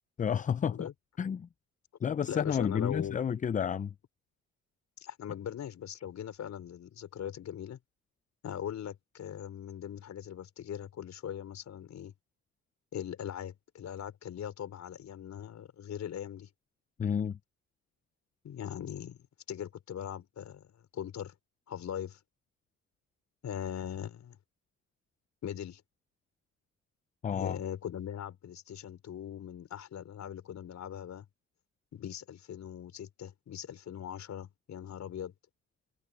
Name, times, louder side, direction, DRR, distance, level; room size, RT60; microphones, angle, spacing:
voice 1, 0.2-0.9 1.2-1.5 2.0-3.9 17.0-17.4 27.2-27.6, left 7 dB, 25° left, 0.4 m, -30 dB
voice 2, 2.3-3.2 5.0-7.8 8.4-12.1 12.9-16.5 18.4-20.7 20.9-21.3 21.7-22.2 23.4-24.4 25.4-25.8 27.3-31.2 31.9-35.3, left 9 dB, 65° left, 4.5 m, -40 dB
cardioid pair, 90°, 30 cm